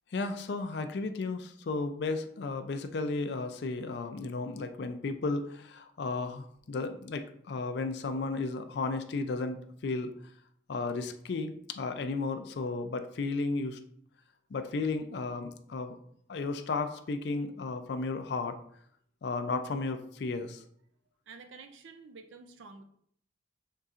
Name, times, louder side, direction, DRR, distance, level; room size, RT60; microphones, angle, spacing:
voice 1, 0.1-9.6 9.8-10.1 10.7-13.8 14.5-16.0 16.3-18.6 19.2-20.6, left 3 dB, 60° left, 8 dB, 0.4 m, -34 dB
voice 2, 21.3-22.8, right 4 dB, 75° right, 7 dB, 0.4 m, -49 dB
5.4 x 3.8 x 2.4 m, 0.65 s
head